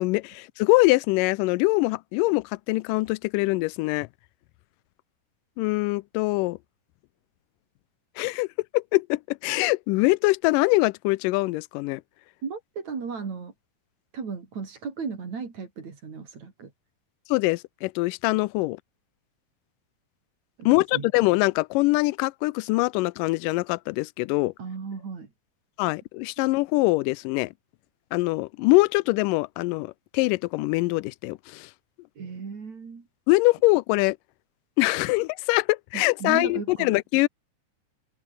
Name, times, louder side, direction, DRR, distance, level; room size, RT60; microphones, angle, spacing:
voice 1, 0.0-4.1 5.6-6.6 8.2-8.5 8.7-12.0 17.3-18.8 20.7-24.5 25.8-27.5 28.1-31.7 33.3-34.2 34.8-37.3, left 22 dB, 85° left, 2.2 m, -23 dB
voice 2, 12.4-13.5 14.1-16.7 20.6-21.1 24.6-25.3 32.2-33.1 35.9-37.0, right 5 dB, 55° right, 5.2 m, -35 dB
omnidirectional pair, 3.8 m